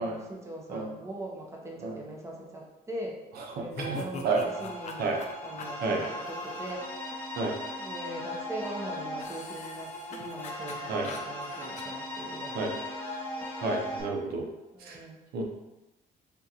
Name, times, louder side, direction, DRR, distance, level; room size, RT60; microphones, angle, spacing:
voice 1, 0.0-3.2 3.6-6.9 7.8-12.7 14.7-15.2, right 1 dB, 15° right, -2 dB, 0.7 m, -41 dB
voice 2, 3.4-4.5 5.0-5.2 5.8-6.0 7.4-7.5 10.9-11.1 12.5-12.7 13.6-14.5 14.8-15.0 15.3-15.4, right 3 dB, 65° right, 1 dB, 0.7 m, -30 dB
sound 1, 3.7-6.7 9.2-11.8, left 4 dB, 45° left, 0.4 m, -43 dB
sound 2, 4.4-14.0, left 1 dB, 10° left, 0.9 m, -38 dB
3.6 x 2.4 x 2.8 m, 1.0 s
cardioid pair, 110°, 17 cm